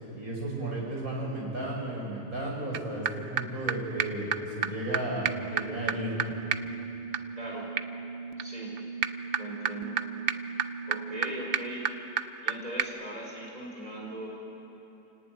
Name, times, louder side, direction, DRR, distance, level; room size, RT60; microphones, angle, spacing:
voice 1, 0.1-6.2, right 1 dB, 75° right, -2 dB, 5.9 m, -34 dB
sound 1, 2.7-2.8 3.1-3.2 3.4-3.5 3.7-3.8 4.0-4.1 4.3-4.4 4.6-4.7 4.9-5.0 5.2-12.5 12.8-12.9, right 7 dB, 50° right, 0.8 m, -32 dB
voice 2, 7.3-7.7 8.4-8.7 9.3-9.9 10.8-11.9 12.4-14.3, right 1 dB, 25° right, -2 dB, 4.6 m, -39 dB
28.0 x 18.5 x 9.3 m, 3.0 s
omnidirectional pair, 1.5 m